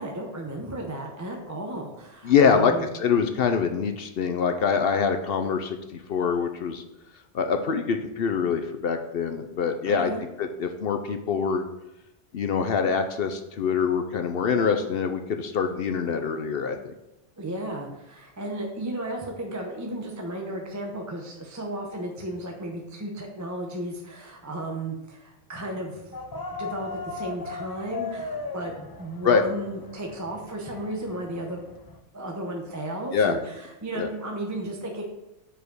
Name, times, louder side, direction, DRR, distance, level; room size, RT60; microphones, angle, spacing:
voice 1, 0.0-2.9 9.8-10.2 17.4-26.1 26.6-28.7 29.0-31.6 32.1-35.0, right 1 dB, 15° right, 1 dB, 0.8 m, -34 dB
voice 2, 2.2-6.8 7.3-10.1 10.4-11.6 12.3-16.9 29.2-29.4 33.1-33.4 34.0-34.1, left 6 dB, 60° left, 6 dB, 0.7 m, -24 dB
sound 1, 26.1-32.0, left 4 dB, 35° left, 0.3 m, -38 dB
5.1 x 4.9 x 6.2 m, 0.93 s
omnidirectional pair, 1.2 m